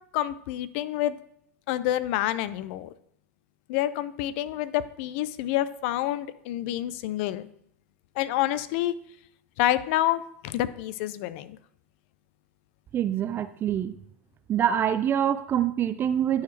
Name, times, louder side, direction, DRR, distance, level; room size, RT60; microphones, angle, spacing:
voice 1, 0.1-1.2 1.7-2.9 3.7-7.5 8.2-8.9 9.6-11.6, left 13 dB, 55° left, 15 dB, 0.5 m, -28 dB
voice 2, 12.9-13.9 14.5-16.4, right 9 dB, 30° right, 13 dB, 0.4 m, -25 dB
11.0 x 4.8 x 3.3 m, 0.70 s
hypercardioid pair, 100°, 7 cm